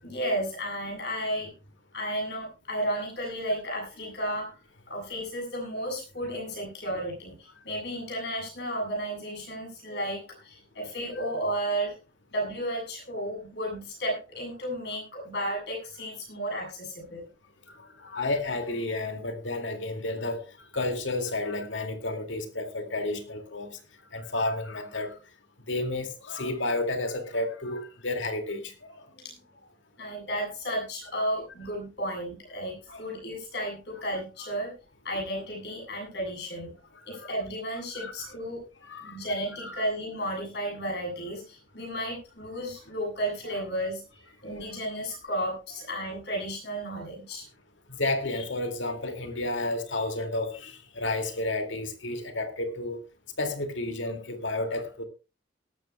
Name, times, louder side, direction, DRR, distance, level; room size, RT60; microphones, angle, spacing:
voice 1, 0.0-1.5 1.9-4.5 4.9-12.0 12.3-17.3 29.1-29.4 30.0-34.7 35.0-36.7 37.1-38.6 39.0-44.0 44.4-47.5, equal, 60° left, 7.7 m, -33 dB
voice 2, 18.0-20.4 20.7-23.7 24.1-25.1 25.7-29.0 32.9-33.0 37.1-37.3 37.9-38.1 38.8-39.2 39.6-39.8 43.4-43.6 47.9-53.0 53.4-55.0, left 2 dB, 80° left, 2.2 m, -31 dB
18.5 x 13.5 x 2.2 m
head